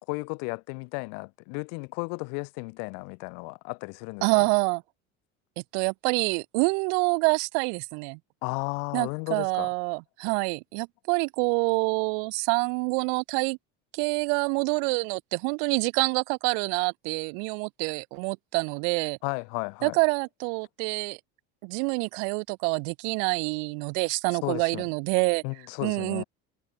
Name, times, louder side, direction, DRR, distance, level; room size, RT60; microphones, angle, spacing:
voice 1, 0.1-4.5 8.4-9.7 19.2-20.0 24.4-24.9 25.4-26.2, left 40 dB or more, 85° left, 3.7 m, -34 dB
voice 2, 4.2-4.8 5.6-8.2 8.9-13.6 13.9-19.2 19.8-21.2 21.6-25.4 25.8-26.2, right 40 dB or more, 85° right, 0.7 m, -27 dB
supercardioid pair, 95°, 31 cm